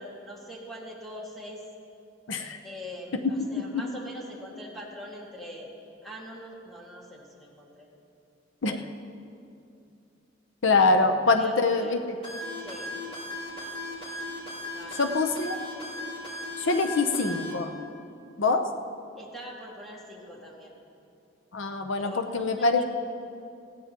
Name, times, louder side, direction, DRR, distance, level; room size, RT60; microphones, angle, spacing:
voice 1, 0.0-1.6 2.6-5.7 6.0-7.9 11.3-12.0 12.6-12.9 14.7-15.1 19.2-20.8 22.0-22.8, equal, ahead, -4 dB, 2.1 m, -42 dB
voice 2, 10.6-12.0 15.0-15.6 16.6-17.7 18.4-18.6 21.5-22.8, left 3 dB, 90° left, 6 dB, 0.8 m, -24 dB
sound 1, 12.2-17.5, left 1 dB, 30° left, 4.2 m, -37 dB
19.0 x 16.0 x 3.0 m, 2.6 s
head